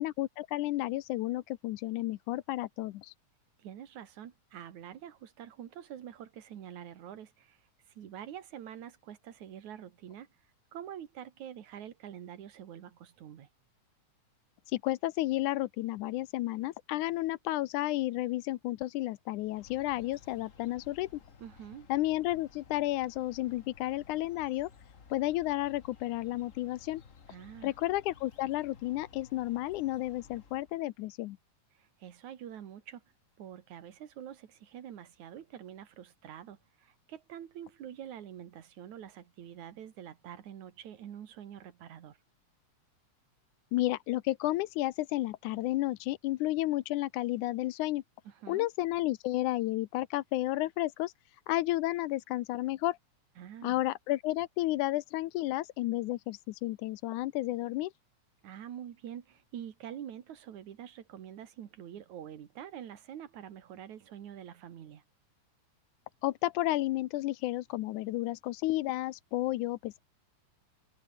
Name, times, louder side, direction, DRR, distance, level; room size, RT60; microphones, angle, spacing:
voice 1, 0.0-3.1 14.7-21.2 21.9-24.7 25.1-27.0 27.6-31.4 43.7-48.0 48.5-53.0 53.6-57.9 66.2-70.0, left 17 dB, 90° left, 2.2 m, -32 dB
voice 2, 3.6-10.3 10.7-13.5 21.4-21.9 27.3-27.7 31.7-33.0 33.4-42.2 48.2-48.7 53.4-53.8 58.4-65.0, right 10 dB, 70° right, 3.2 m, -46 dB
sound 1, 19.4-30.8, left 6 dB, 35° left, 1.3 m, -56 dB
omnidirectional pair, 3.5 m